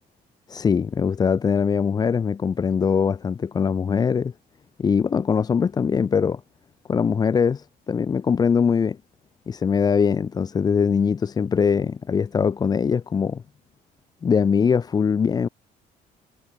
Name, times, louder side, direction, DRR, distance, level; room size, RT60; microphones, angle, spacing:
voice 1, 0.5-4.3 4.8-6.4 6.9-9.0 9.5-13.4 14.2-15.5, left 6 dB, 25° left, 0.4 m, -22 dB
cardioid pair, 110°, 17 cm